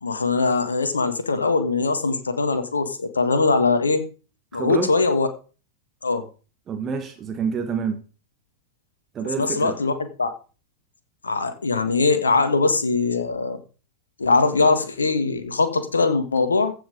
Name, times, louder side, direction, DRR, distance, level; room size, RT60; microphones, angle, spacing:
voice 1, 0.0-4.0 4.5-5.3 6.0-6.2 9.4-9.9 10.2-10.3 11.2-13.6 14.2-16.7, left 3 dB, 75° left, 1.6 m, -21 dB
voice 2, 4.5-5.0 6.7-8.0 9.1-9.8, right 6 dB, 25° right, 1.5 m, -28 dB
15.0 x 5.7 x 5.3 m
figure-of-eight pair, 90°, 0 cm